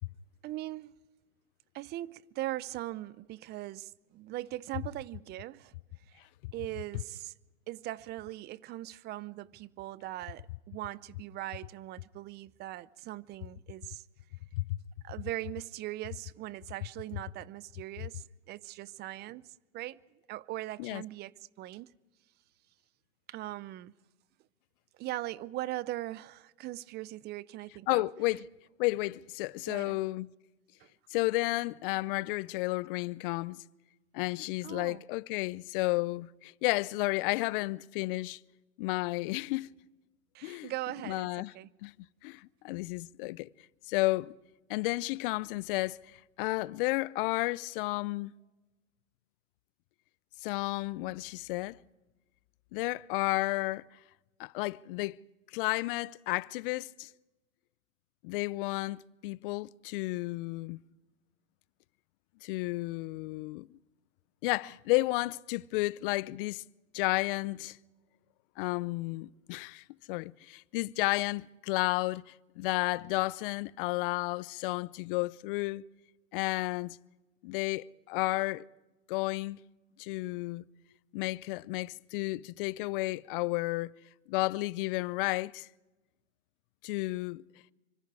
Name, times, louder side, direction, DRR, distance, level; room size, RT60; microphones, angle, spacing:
voice 1, 0.4-0.9 1.7-5.7 6.1-6.2 6.5-7.3 7.7-14.0 15.0-20.0 20.3-21.9 23.3-23.9 25.0-28.0 29.7-30.0 30.8-30.9 34.6-35.0 40.3-41.7, right 16 dB, 25° right, 0.6 m, -40 dB
voice 2, 27.9-28.4 28.8-30.3 31.1-33.6 34.1-38.4 38.8-39.7 40.4-40.7 41.1-41.5 41.8-41.9 42.2-43.5 43.9-44.3 44.7-46.0 46.4-48.3 50.4-51.8 52.7-53.9 54.4-55.2 55.5-57.1 58.2-60.8 62.4-63.7 64.4-66.6 66.9-67.8 68.6-75.8 76.3-77.0 77.4-78.7 79.1-79.6 80.0-80.6 81.1-83.9 84.3-85.7 86.8-87.4, left 21 dB, 45° left, 0.6 m, -32 dB
26.5 x 25.0 x 4.8 m
hypercardioid pair, 120°, 39 cm